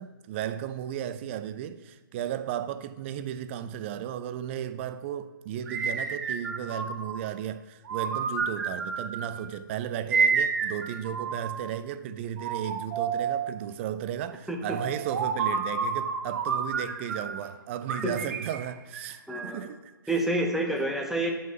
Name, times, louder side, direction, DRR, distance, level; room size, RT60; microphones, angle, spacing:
voice 1, 0.0-19.9, right 10 dB, 35° right, 0.4 m, -35 dB
sound 1, 5.7-7.3 7.9-9.4 10.1-11.7 12.4-13.6 14.7-17.4 17.9-19.7, right 5 dB, 55° right, 0.9 m, -30 dB
voice 2, 14.5-14.8 18.0-18.1 19.3-19.7 20.1-21.3, right 1 dB, ahead, 0.8 m, -28 dB
6.2 x 5.6 x 5.6 m
hypercardioid pair, 140°, 12 cm